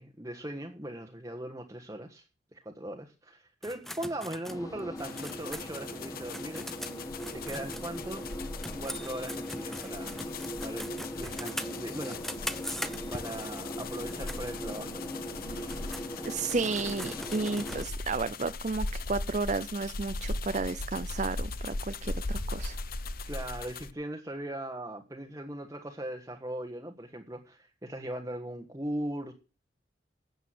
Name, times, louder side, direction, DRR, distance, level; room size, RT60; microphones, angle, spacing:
voice 1, 0.0-2.2 2.5-6.7 7.0-8.2 8.8-10.3 10.6-12.2 13.1-15.2 15.5-16.0 23.3-29.3, right 1 dB, 20° right, 2 dB, 1.4 m, -39 dB
sound 1, 3.6-8.3 8.6-13.4 13.9-14.4 14.9-15.0 15.5-17.8, equal, ahead, 0.8 m, -42 dB
sound 2, 4.5-17.9, equal, 20° left, 1.9 m, -40 dB
sound 3, 5.0-23.9, left 3 dB, 55° left, 0.9 m, -39 dB
voice 2, 16.2-22.8, right 3 dB, 40° right, 12 dB, 0.6 m, -32 dB
12.5 x 8.2 x 7.8 m, 0.34 s
head